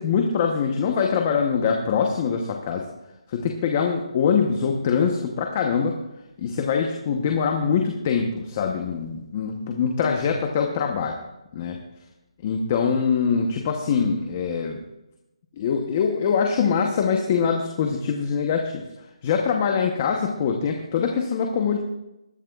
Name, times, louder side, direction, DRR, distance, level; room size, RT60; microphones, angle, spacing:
voice 1, 0.0-2.9 3.3-6.0 6.4-11.2 11.5-11.8 12.4-14.8 15.6-18.8 19.2-21.8, left 6 dB, 20° left, 3 dB, 0.9 m, -23 dB
21.0 x 11.5 x 2.4 m, 0.93 s
hypercardioid pair, 175°, 3 cm